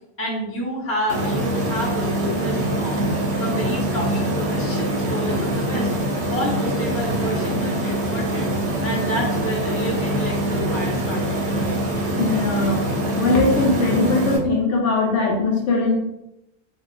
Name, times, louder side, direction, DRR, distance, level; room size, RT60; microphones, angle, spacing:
voice 1, 0.2-3.0 3.4-5.9 6.3-8.6 8.8-11.4, equal, 15° left, -4 dB, 0.5 m, -29 dB
sound 1, 1.1-14.4, right 1 dB, 60° right, 0.8 m, -24 dB
voice 2, 12.2-12.9 13.2-16.0, left 3 dB, 65° left, -1 dB, 0.8 m, -20 dB
2.4 x 2.3 x 3.8 m, 0.86 s
omnidirectional pair, 1.5 m